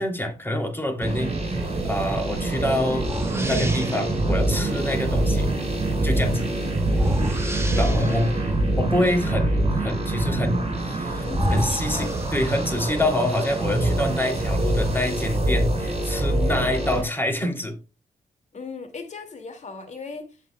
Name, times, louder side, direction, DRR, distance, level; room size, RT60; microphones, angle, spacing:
voice 1, 0.0-5.5 6.0-6.5 7.7-8.3 8.8-11.2 11.5-17.8, left 1 dB, 15° left, 2.7 m, -26 dB
sound 1, 1.0-17.0, right 1 dB, 45° right, 4.0 m, -25 dB
sound 2, 3.0-4.2 6.8-8.4 10.7-10.8 11.3-12.9, equal, 15° right, 1.5 m, -29 dB
voice 2, 6.6-7.1 7.7-8.4 11.2-12.2 18.5-20.4, left 4 dB, 50° left, 2.3 m, -38 dB
15.5 x 5.5 x 2.3 m
cardioid pair, 70°, 15 cm